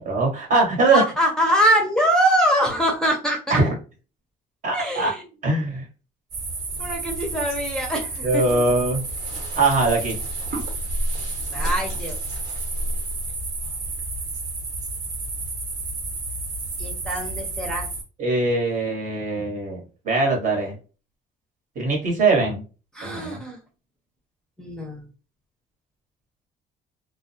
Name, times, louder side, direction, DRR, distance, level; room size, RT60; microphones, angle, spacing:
voice 1, 0.0-1.0 3.5-3.7 4.6-5.1 5.4-5.8 8.2-9.0 9.5-10.2 18.2-20.8 21.8-22.6 23.0-23.4, right 3 dB, 50° right, 1 dB, 1.1 m, -21 dB
voice 2, 0.9-3.6 4.7-5.2 6.8-8.4 11.5-12.2 16.8-17.9 22.9-23.6 24.6-25.1, equal, 5° left, 0 dB, 0.6 m, -23 dB
sound 1, 6.3-18.0, right 2 dB, 75° right, 1.2 m, -30 dB
2.3 x 2.1 x 2.7 m, 0.34 s
cardioid pair, 110°, 17 cm